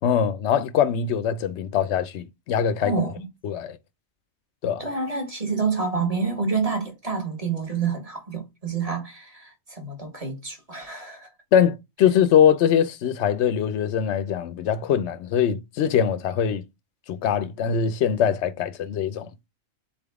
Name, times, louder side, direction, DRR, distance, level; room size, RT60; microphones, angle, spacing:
voice 1, 0.0-2.9 3.4-3.8 4.6-4.8 11.5-16.6 17.1-19.3, left 8 dB, 65° left, 0.8 m, -22 dB
voice 2, 2.8-3.2 4.8-11.3, right 5 dB, 25° right, 1.5 m, -28 dB
4.2 x 3.6 x 3.5 m
omnidirectional pair, 1.4 m